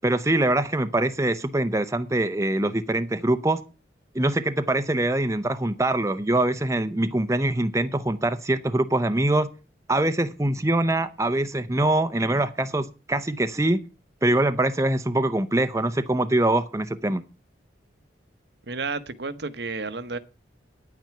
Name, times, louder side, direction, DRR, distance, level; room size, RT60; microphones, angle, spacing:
voice 1, 0.0-3.6 4.1-9.5 9.9-13.8 14.2-17.2, right 1 dB, 15° right, 0.6 m, -23 dB
voice 2, 18.7-20.2, right 4 dB, 65° right, 1.0 m, -31 dB
10.0 x 9.1 x 5.8 m
head